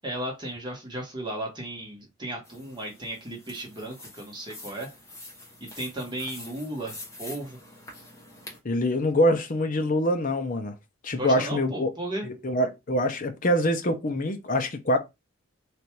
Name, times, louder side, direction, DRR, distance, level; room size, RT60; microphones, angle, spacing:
voice 1, 0.0-4.9 5.6-7.6 11.2-12.3, right 1 dB, 20° right, 1.2 m, -35 dB
sound 1, 2.5-8.6, left 2 dB, 15° left, 1.0 m, -46 dB
voice 2, 8.6-10.7 11.0-11.9 12.2-15.0, equal, 40° left, 0.6 m, -25 dB
3.4 x 2.6 x 4.4 m
head